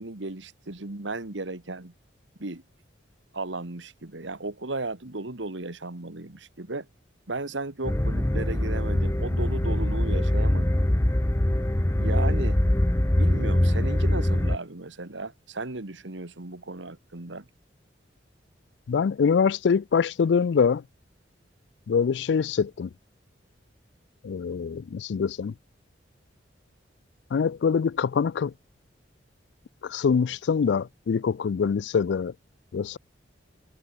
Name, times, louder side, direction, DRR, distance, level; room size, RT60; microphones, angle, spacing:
voice 1, 0.0-1.9 2.4-2.6 3.3-6.9 7.3-10.8 12.0-12.6 13.1-17.4, right 2 dB, 85° right, 1.9 m, -35 dB
sound 1, 7.8-14.6, left 1 dB, 15° left, 0.6 m, -23 dB
voice 2, 18.9-20.8 21.9-22.9 24.2-25.5 27.3-28.5 29.8-32.3 32.7-33.0, left 6 dB, 65° left, 0.4 m, -24 dB
head